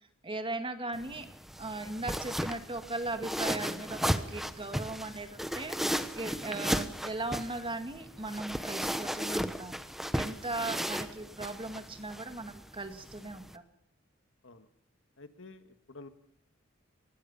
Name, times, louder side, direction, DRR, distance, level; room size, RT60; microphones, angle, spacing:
voice 1, 0.2-1.3 1.6-5.8 6.1-9.8 10.1-13.6, right 2 dB, 25° right, 7 dB, 2.1 m, -38 dB
sound 1, 0.9-13.6, equal, ahead, 1.1 m, -35 dB
voice 2, 15.2-16.1, left 3 dB, 70° left, 9 dB, 1.9 m, -50 dB
24.0 x 19.5 x 5.6 m, 0.71 s
head